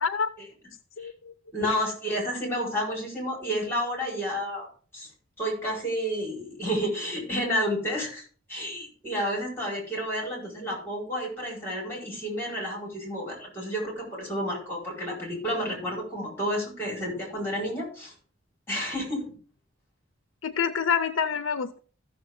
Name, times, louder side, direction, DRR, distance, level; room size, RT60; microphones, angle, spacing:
voice 1, 1.0-1.3 1.7-1.8 20.4-21.8, left 6 dB, 75° left, 11 dB, 0.6 m, -27 dB
voice 2, 1.5-4.7 4.9-5.1 5.4-8.2 8.5-18.1 18.7-19.4, equal, 10° left, -1 dB, 4.7 m, -30 dB
14.5 x 6.8 x 3.6 m, 0.41 s
head